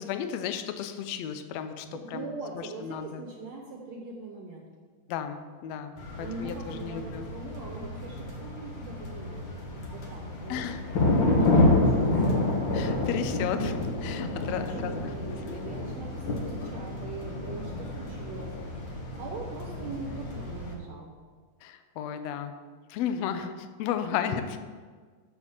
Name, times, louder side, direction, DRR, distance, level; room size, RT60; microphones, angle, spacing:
voice 1, 0.0-3.2 5.1-7.3 10.5-10.9 12.7-15.7 21.6-22.5 22.9-24.4, left 9 dB, 75° left, 9 dB, 1.6 m, -34 dB
voice 2, 1.8-4.7 6.2-10.7 11.3-12.5 14.7-18.5 19.2-21.2 24.1-24.6, right 3 dB, 65° right, 0 dB, 2.0 m, -41 dB
sound 1, 6.0-20.7, left 2 dB, 50° left, 1.5 m, -29 dB
7.0 x 6.9 x 6.9 m, 1.5 s
omnidirectional pair, 3.7 m